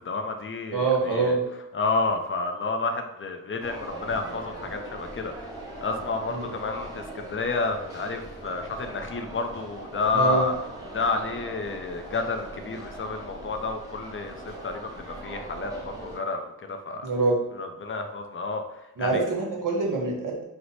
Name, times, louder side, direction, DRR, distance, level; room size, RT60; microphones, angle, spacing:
voice 1, 0.0-1.4 1.7-5.5 5.8-10.6 10.9-17.1 17.6-18.6 19.0-19.2, left 3 dB, 35° left, 5 dB, 0.4 m, -30 dB
voice 2, 0.7-1.4 6.3-6.5 10.1-10.5 17.0-17.4 19.0-20.4, right 3 dB, 60° right, -1 dB, 0.9 m, -25 dB
sound 1, 3.6-16.2, right 1 dB, 10° right, 1.0 m, -40 dB
3.1 x 2.0 x 4.0 m, 0.93 s
cardioid pair, 85°, 36 cm